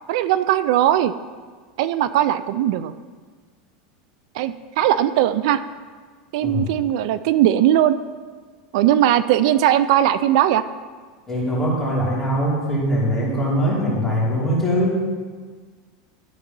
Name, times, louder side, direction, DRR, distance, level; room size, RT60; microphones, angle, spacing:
voice 1, 0.1-1.1 1.8-2.9 4.4-5.6 6.3-8.0 8.7-10.6, right 12 dB, 65° right, 14 dB, 0.3 m, -19 dB
voice 2, 11.3-15.0, equal, 10° left, -8 dB, 2.8 m, -22 dB
12.0 x 4.0 x 5.3 m, 1.5 s
supercardioid pair, 145°, 3 cm